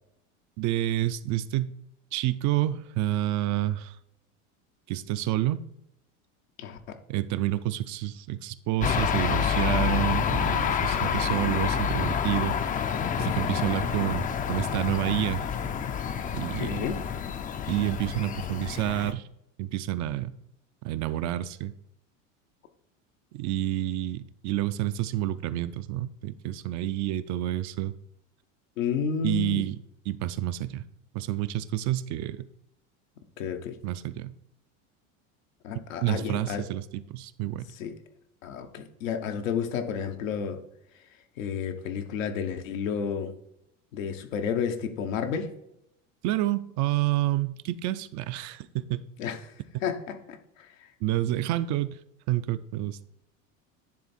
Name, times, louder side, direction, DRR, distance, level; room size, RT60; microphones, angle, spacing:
voice 1, 0.6-1.7 2.1-3.9 4.9-5.6 7.1-12.6 13.2-15.5 16.3-16.9 17.7-19.3 19.6-20.3 20.8-21.7 23.3-27.9 29.2-29.8 30.1-30.8 31.1-32.5 33.8-34.3 36.0-37.7 46.2-49.0 51.0-52.0 52.3-53.0, right 14 dB, 50° right, 0.5 m, -29 dB
sound 1, 8.8-19.1, left 8 dB, 25° left, 0.4 m, -28 dB
voice 2, 16.6-17.0 28.8-29.7 33.4-33.8 35.6-36.7 37.7-37.9 38.4-40.6 41.4-43.3 43.9-45.5 49.2-49.5 49.8-50.7, left 7 dB, 90° left, 1.0 m, -31 dB
10.0 x 3.5 x 4.2 m
supercardioid pair, 100°, 38 cm